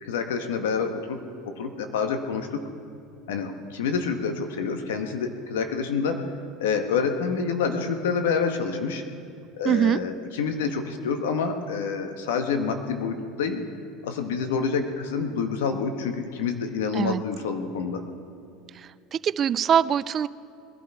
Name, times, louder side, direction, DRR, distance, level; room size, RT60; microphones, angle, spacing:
voice 1, 0.0-2.6 3.3-6.2 6.6-9.0 9.5-13.7 14.0-18.0, left 5 dB, 85° left, 6 dB, 1.3 m, -27 dB
voice 2, 9.6-10.0 16.9-17.2 19.1-20.3, right 9 dB, 40° right, 17 dB, 0.4 m, -22 dB
21.5 x 12.0 x 4.5 m, 2.5 s
supercardioid pair, 95°, 0 cm